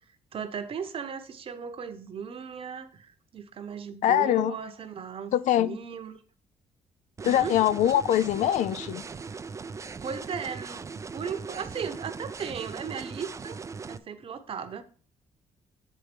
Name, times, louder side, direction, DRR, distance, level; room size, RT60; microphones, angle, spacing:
voice 1, 0.3-6.2 7.2-7.6 10.0-10.8 11.1-13.6 13.9-14.8, right 6 dB, 45° right, 1.0 m, -36 dB
voice 2, 4.0-4.6 5.3-5.8 7.2-9.0, left 11 dB, 75° left, 0.5 m, -23 dB
sound 1, 7.2-14.0, right 5 dB, 25° right, 0.4 m, -39 dB
8.3 x 4.7 x 5.2 m
cardioid pair, 115°, 13 cm